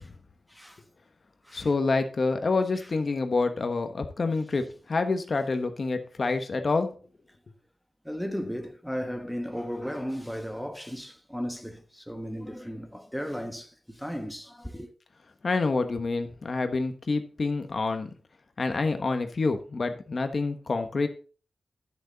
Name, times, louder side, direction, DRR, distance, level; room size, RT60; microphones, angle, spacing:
voice 1, 0.5-0.8 1.4-1.7 2.7-2.9 8.0-14.9, equal, ahead, 1.1 m, -35 dB
voice 2, 1.5-6.9 15.4-18.1 18.6-21.1, left 3 dB, 50° left, 1.2 m, -27 dB
11.0 x 6.7 x 4.0 m
wide cardioid pair, 90°, 0 cm